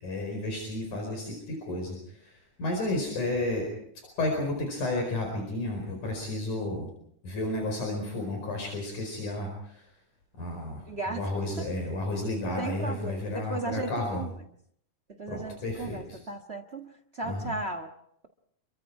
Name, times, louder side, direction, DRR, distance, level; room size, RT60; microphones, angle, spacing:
voice 1, 0.0-3.7 4.2-6.9 7.2-9.9 10.4-14.3 15.3-16.2 17.2-17.5, left 2 dB, 70° left, 2 dB, 6.2 m, -32 dB
voice 2, 10.9-11.3 11.6-11.7 12.6-14.3 15.2-17.9, right 2 dB, 45° right, 8 dB, 0.8 m, -36 dB
29.0 x 23.5 x 4.8 m, 0.69 s
omnidirectional pair, 3.6 m